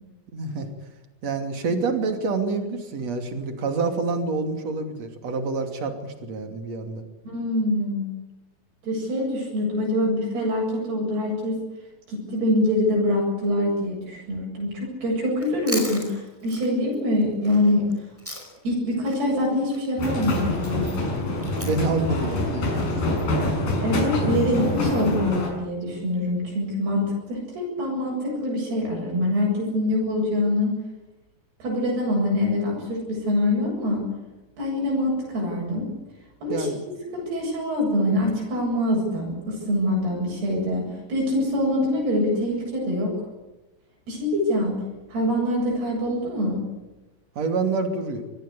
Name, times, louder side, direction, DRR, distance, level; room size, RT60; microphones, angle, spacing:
voice 1, 0.3-0.7 1.2-7.0 21.6-23.5 36.5-36.8 47.4-48.2, right 3 dB, 45° right, 6 dB, 3.6 m, -27 dB
voice 2, 7.2-8.1 8.8-11.6 12.1-17.9 18.6-20.9 23.8-30.8 31.6-34.0 34.6-35.9 36.4-36.7 37.1-43.1 44.1-44.8 45.1-46.6, left 1 dB, 80° right, -3 dB, 10.0 m, -24 dB
Chewing mastication, 15.3-18.8 19.0-23.4, equal, 5° right, 4.8 m, -39 dB
sound 1, 20.0-25.5, left 2 dB, 60° left, 7.7 m, -25 dB
25.0 x 20.0 x 8.5 m, 1.1 s
omnidirectional pair, 4.5 m